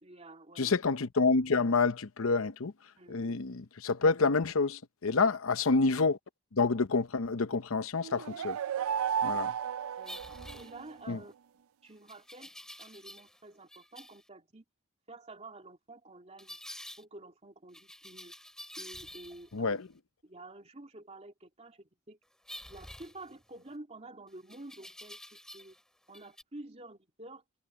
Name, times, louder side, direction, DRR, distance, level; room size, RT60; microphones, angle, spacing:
voice 1, 0.0-0.8 3.0-3.4 5.1-5.4 9.3-9.5 10.0-10.2 10.5-11.3 11.8-12.5 12.8-14.6 15.1-16.6 17.0-18.3 18.8-19.8 20.2-22.2 22.7-25.8 26.1-27.4, right 2 dB, 30° right, 2.7 m, -50 dB
voice 2, 0.6-2.7 3.1-6.2 6.5-8.6 9.2-9.5 11.1-11.2 19.5-19.9, left 4 dB, 75° left, 0.8 m, -28 dB
sound 1, 8.0-10.9, right 8 dB, 75° right, 0.3 m, -34 dB
sound 2, 10.0-11.2 12.1-13.4 13.7-14.2 16.4-17.0 17.7-19.6 22.5-23.7 24.5-25.8 26.1-26.4, left 1 dB, 5° left, 3.4 m, -48 dB
head